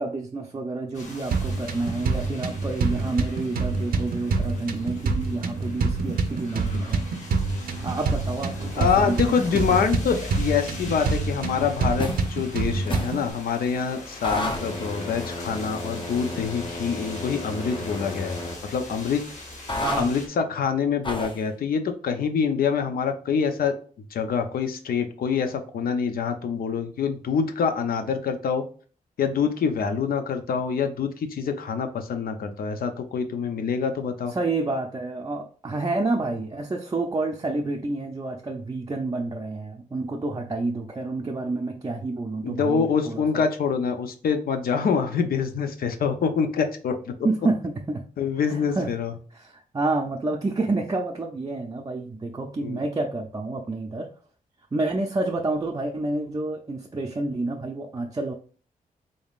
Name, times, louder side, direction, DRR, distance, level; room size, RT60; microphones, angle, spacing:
voice 1, 0.0-7.0 7.8-9.9 19.8-20.1 34.3-43.5 47.2-48.0 48.4-48.9 49.3-54.1 54.7-58.3, right 2 dB, 25° right, 0 dB, 0.4 m, -29 dB
sound 1, 0.9-20.3, left 2 dB, 55° left, 1.2 m, -41 dB
sound 2, 1.3-13.3, right 4 dB, 90° right, 0.6 m, -27 dB
voice 2, 8.8-19.2 20.0-23.7 24.1-28.6 29.2-34.3 42.4-47.1 48.2-49.1 52.6-52.8, left 6 dB, 85° left, 7 dB, 0.6 m, -25 dB
sound 3, 12.0-12.3 12.9-13.2 14.2-18.6 19.7-20.1 21.0-21.4, left 1 dB, 35° left, 0.7 m, -32 dB
3.8 x 3.5 x 2.4 m, 0.42 s
wide cardioid pair, 110°, 15 cm